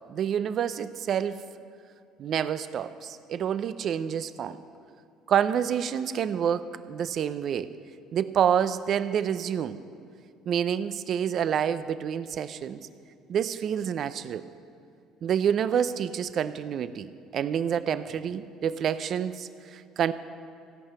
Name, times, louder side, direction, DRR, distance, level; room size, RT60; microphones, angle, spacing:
voice 1, 0.1-1.4 2.2-4.6 5.3-7.7 8.1-9.8 10.5-12.8 13.3-14.4 15.2-20.1, right 8 dB, 55° right, 14 dB, 0.5 m, -28 dB
16.0 x 5.6 x 8.1 m, 2.4 s
supercardioid pair, 90°, 0 cm